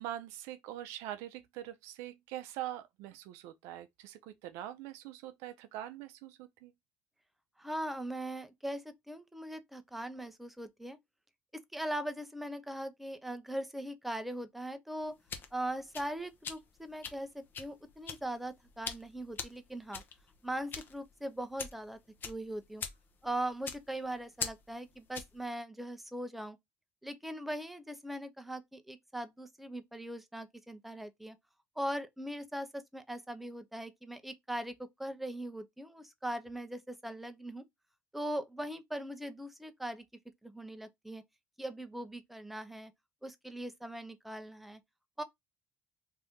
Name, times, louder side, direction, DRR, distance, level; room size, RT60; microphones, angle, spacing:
voice 1, 0.0-6.7, right 13 dB, 85° right, 0.4 m, -43 dB
voice 2, 7.6-11.0 11.7-15.1 15.5-20.0 20.4-22.0 22.2-22.8 23.2-26.6 27.0-31.4 31.8-37.6 38.1-40.0 40.4-41.2 41.6-42.9 43.2-44.8 45.2-45.3, right 1 dB, 5° right, 0.6 m, -40 dB
sound 1, 15.0-25.4, left 6 dB, 45° left, 0.7 m, -44 dB
2.7 x 2.5 x 3.4 m
supercardioid pair, 95°, 5 cm